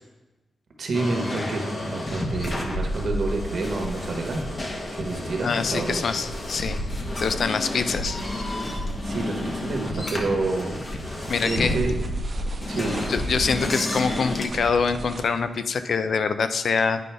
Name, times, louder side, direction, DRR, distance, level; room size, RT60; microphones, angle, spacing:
voice 1, 0.8-6.1 9.0-11.9 12.7-13.0, right 3 dB, 55° right, 2 dB, 1.0 m, -29 dB
sound 1, 0.9-14.5, left 1 dB, 30° left, 0.9 m, -30 dB
voice 2, 5.4-6.8 7.2-8.2 11.3-11.8 13.1-17.0, left 5 dB, 55° left, 11 dB, 0.4 m, -24 dB
sound 2, 11.1-15.4, right 2 dB, 35° right, 0.7 m, -39 dB
9.1 x 5.4 x 3.4 m, 1.1 s
wide cardioid pair, 150°, 0 cm